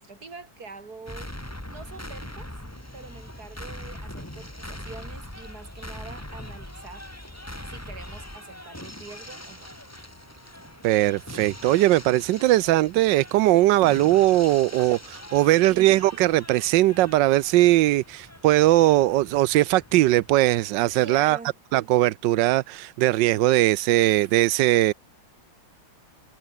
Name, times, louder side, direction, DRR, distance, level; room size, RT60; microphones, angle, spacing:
voice 1, 0.0-1.3 1.7-2.5 2.9-7.1 7.7-9.7 15.5-15.9 21.0-21.6, right 4 dB, 45° right, 3.8 m, -44 dB
sound 1, 1.1-21.0, left 1 dB, 5° left, 2.6 m, -42 dB
voice 2, 10.8-21.4 21.7-24.9, right 16 dB, 70° right, 1.1 m, -20 dB
omnidirectional pair, 2.3 m